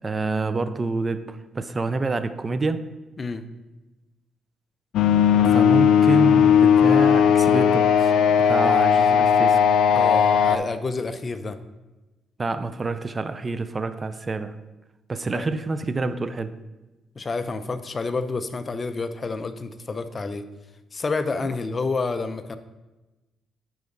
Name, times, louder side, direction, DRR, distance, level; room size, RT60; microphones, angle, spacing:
voice 1, 0.0-2.8 5.5-8.1 8.4-9.6 12.4-14.6 15.1-16.5, right 3 dB, 30° right, 11 dB, 0.5 m, -27 dB
sound 1, 4.9-10.6, left 8 dB, 80° left, 0.4 m, -17 dB
voice 2, 9.9-11.6 15.3-15.5 17.2-20.5 20.9-22.6, left 3 dB, 35° left, 10 dB, 0.6 m, -29 dB
10.5 x 4.8 x 4.0 m, 1.1 s
cardioid pair, 90°, 0 cm